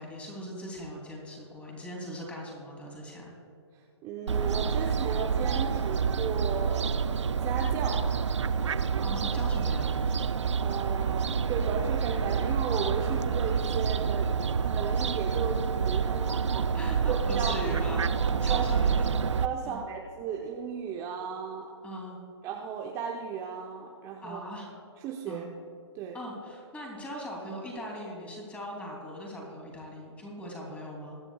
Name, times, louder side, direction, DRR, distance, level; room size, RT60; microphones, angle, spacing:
voice 1, 0.0-3.3 9.0-9.9 16.7-19.2 19.6-19.8 21.8-22.2 24.2-24.7 25.3-25.4 26.1-31.1, equal, 10° left, -2 dB, 3.0 m, -40 dB
voice 2, 4.0-7.0 7.4-8.1 10.6-14.3 14.7-16.7 17.1-17.6 18.5-18.6 19.4-21.7 22.4-24.4 25.0-25.5 25.9-26.2, right 6 dB, 20° right, 1 dB, 0.8 m, -35 dB
Fowl, 4.3-19.5, right 6 dB, 85° right, 0.5 m, -28 dB
22.5 x 9.9 x 2.4 m, 2.6 s
hypercardioid pair, 135°, 15 cm